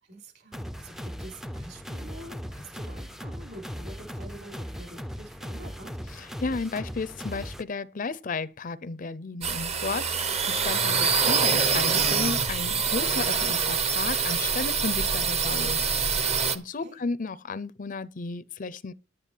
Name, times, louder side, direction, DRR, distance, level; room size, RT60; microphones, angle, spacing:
voice 1, 0.0-6.0 16.6-17.0, right 1 dB, 55° right, 4.6 m, -46 dB
sound 1, 0.5-7.6, equal, ahead, 0.5 m, -38 dB
voice 2, 6.2-18.9, left 4 dB, 45° left, 0.6 m, -34 dB
sound 2, 9.4-16.6, right 6 dB, 35° right, 0.9 m, -25 dB
10.5 x 9.1 x 4.5 m
head